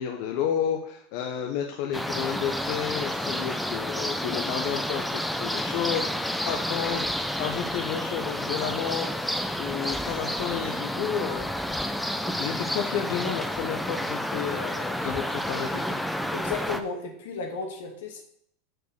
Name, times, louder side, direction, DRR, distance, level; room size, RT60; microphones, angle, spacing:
voice 1, 0.0-16.0, left 8 dB, 60° left, 3 dB, 1.1 m, -32 dB
sound 1, 1.9-16.8, equal, ahead, 0.7 m, -30 dB
voice 2, 16.3-18.2, left 4 dB, 85° left, 2 dB, 2.4 m, -34 dB
6.7 x 6.5 x 6.6 m, 0.68 s
supercardioid pair, 135°, 0 cm